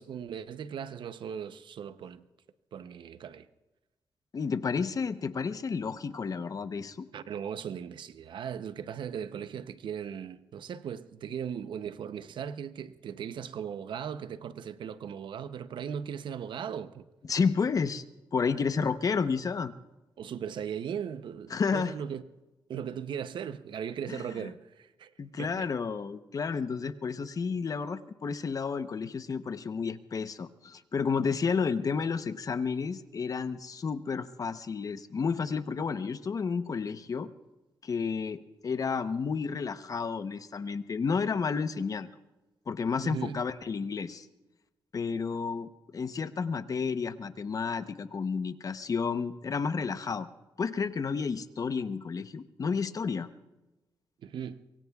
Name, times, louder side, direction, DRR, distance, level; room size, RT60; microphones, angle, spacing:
voice 1, 0.0-2.2 2.7-3.5 7.1-17.0 20.2-22.2 22.7-25.1 25.4-25.7 43.0-43.4 54.2-54.7, right 8 dB, 75° right, 0.7 m, -38 dB
voice 2, 4.3-7.1 17.3-18.0 18.3-19.7 21.5-21.9 24.1-24.5 25.2-37.3 37.8-42.1 42.7-44.3 44.9-50.3 50.6-53.3, left 5 dB, 45° left, 0.8 m, -31 dB
24.5 x 23.0 x 2.4 m
cardioid pair, 90°, 8 cm